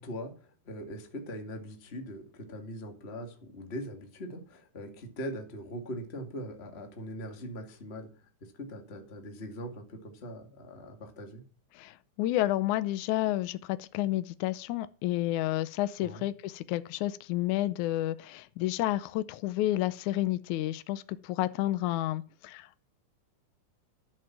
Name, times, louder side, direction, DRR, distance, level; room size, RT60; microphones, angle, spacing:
voice 1, 0.0-8.1 8.4-11.4 16.0-16.3, equal, 20° left, 2.2 m, -41 dB
voice 2, 11.7-22.9, left 15 dB, 80° left, 2.1 m, -30 dB
13.0 x 7.4 x 6.0 m
omnidirectional pair, 3.4 m